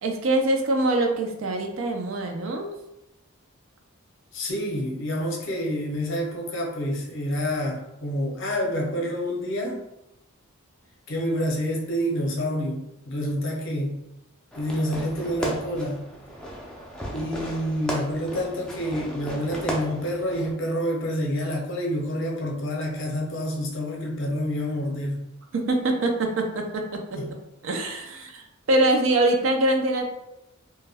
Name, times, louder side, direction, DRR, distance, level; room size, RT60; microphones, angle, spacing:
voice 1, 0.0-2.7 25.5-27.0 27.6-30.1, right 2 dB, 65° right, 3 dB, 0.4 m, -24 dB
voice 2, 4.3-9.8 11.1-14.0 14.6-16.1 17.1-25.2 27.2-27.3, equal, 60° left, -1 dB, 0.6 m, -28 dB
Fireworks, 14.5-20.5, equal, 5° left, 0.3 m, -35 dB
2.2 x 2.1 x 3.3 m, 0.88 s
head